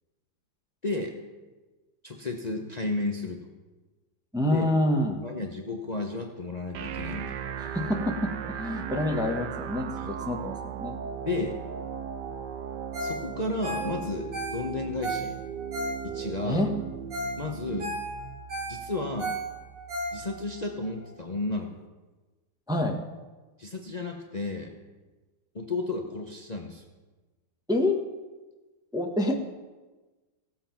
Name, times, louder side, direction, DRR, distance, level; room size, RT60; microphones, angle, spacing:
voice 1, 0.8-1.2 2.0-3.4 4.5-4.7 5.2-7.4 10.0-10.1 11.2-11.6 13.0-15.4 16.0-16.7 17.4-18.0 18.7-19.4 20.1-21.9 23.6-24.7 25.5-26.8, left 2 dB, 85° left, 2 dB, 0.3 m, -33 dB
voice 2, 4.3-5.2 7.6-11.0 16.4-16.7 22.7-23.0 27.7-28.0 28.9-29.4, left 1 dB, 5° right, 2 dB, 0.5 m, -27 dB
sound 1, 6.7-20.7, right 8 dB, 65° right, 1.2 m, -37 dB
Ringtone, 12.9-13.2 13.5-16.4 16.8-16.9 17.1-17.4 17.7-20.5 21.0-21.1, right 1 dB, 85° right, 5.4 m, -34 dB
16.5 x 7.6 x 5.8 m, 1.2 s
omnidirectional pair, 2.4 m